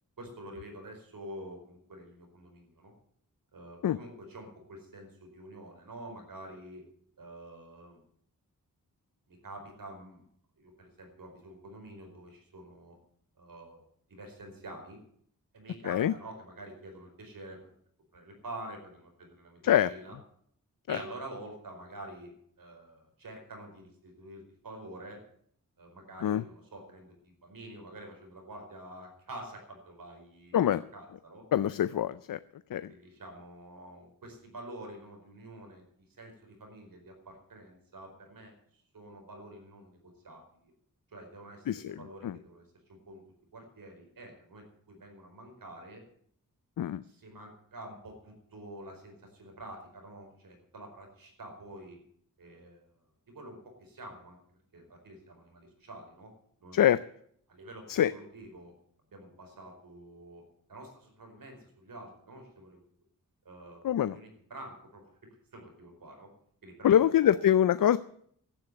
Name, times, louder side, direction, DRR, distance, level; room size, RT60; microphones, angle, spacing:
voice 1, 0.2-2.9 3.5-6.8 7.2-8.0 9.3-10.2 10.6-13.0 13.4-13.8 14.1-15.0 15.5-17.7 18.1-20.1 20.9-22.3 22.6-25.2 25.8-31.4 32.8-35.8 36.2-38.5 38.9-40.7 41.1-42.6 42.9-43.2 43.5-46.0 47.0-52.0 52.4-53.0 53.3-54.4 54.7-56.3 56.6-56.9 57.5-58.7 59.1-60.4 60.7-62.8 63.4-63.9 64.1-65.1 65.5-66.3 66.6-67.4, right 1 dB, 75° right, 3 dB, 4.9 m, -47 dB
voice 2, 31.5-32.4 32.7-32.9 41.7-41.9 42.2-42.4 46.8-47.0 56.7-57.0 57.9-58.1 63.8-64.2 66.8-68.0, left 10 dB, 75° left, 15 dB, 0.5 m, -24 dB
12.0 x 9.8 x 9.1 m, 0.64 s
wide cardioid pair, 85°, 34 cm